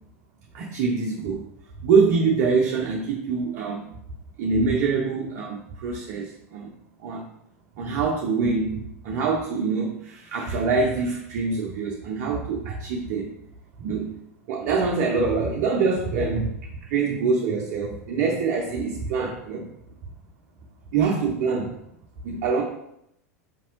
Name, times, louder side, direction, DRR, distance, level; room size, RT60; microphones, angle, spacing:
voice 1, 0.5-1.4 1.8-3.9 4.4-6.7 7.0-7.2 7.8-8.8 9.0-13.3 13.8-14.1 14.5-16.5 16.8-19.7 20.9-21.7 22.2-22.6, right 4 dB, 55° right, 0 dB, 0.6 m, -24 dB
5.1 x 2.8 x 3.1 m, 0.79 s
figure-of-eight pair, 85°, 9 cm